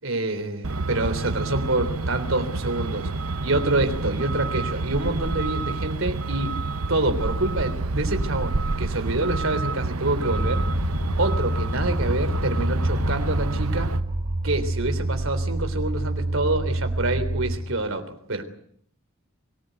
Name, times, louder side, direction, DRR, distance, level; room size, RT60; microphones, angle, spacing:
voice 1, 0.0-3.1 3.4-6.6 6.9-10.6 11.2-13.9 14.4-18.4, right 2 dB, 65° right, 8 dB, 3.5 m, -27 dB
Truck, 0.6-14.0, right 3 dB, 80° right, 0.9 m, -28 dB
sound 1, 10.3-17.6, right 1 dB, 20° right, 4.6 m, -27 dB
25.0 x 18.5 x 9.3 m, 0.66 s
head